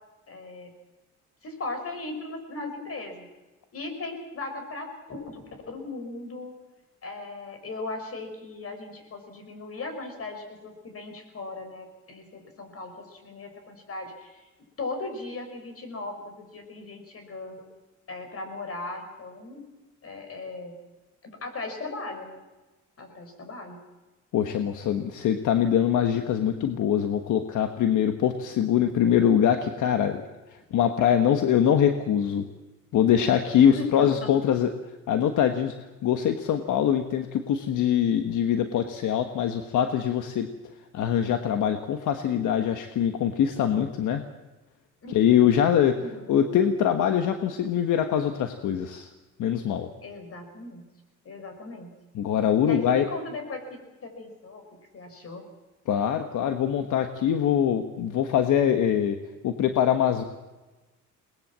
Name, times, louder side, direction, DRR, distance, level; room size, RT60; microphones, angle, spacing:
voice 1, 0.3-0.7 1.4-3.3 3.7-6.5 7.0-14.5 14.8-17.7 18.1-19.7 20.0-20.8 21.2-22.4 23.0-23.8 33.5-34.3 45.0-45.4 46.0-46.3 50.0-50.8 51.2-51.9 52.6-53.6 54.0-54.6 54.9-55.4, left 3 dB, 50° left, 6 dB, 5.7 m, -37 dB
voice 2, 24.3-30.2 30.7-32.5 32.9-34.7 35.1-35.7 36.0-40.5 40.9-44.2 45.1-45.9 46.3-49.1 49.4-49.9 52.1-53.1 55.9-59.2 59.4-60.2, left 9 dB, 80° left, 7 dB, 1.4 m, -23 dB
22.0 x 20.0 x 7.5 m, 1.1 s
cardioid pair, 90°, 30 cm